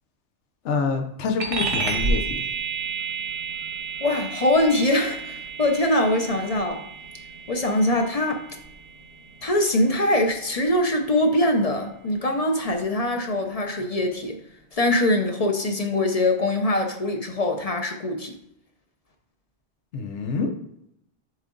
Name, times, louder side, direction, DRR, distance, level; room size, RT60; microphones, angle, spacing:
voice 1, 0.6-2.5 19.9-20.5, left 4 dB, 80° left, 5 dB, 1.1 m, -26 dB
sound 1, 1.4-11.2, right 4 dB, 80° right, 1.5 m, -32 dB
voice 2, 4.0-6.8 7.5-8.4 9.4-14.4 14.7-18.3, left 1 dB, 40° left, 4 dB, 0.6 m, -23 dB
7.3 x 3.8 x 3.8 m, 0.79 s
omnidirectional pair, 1.2 m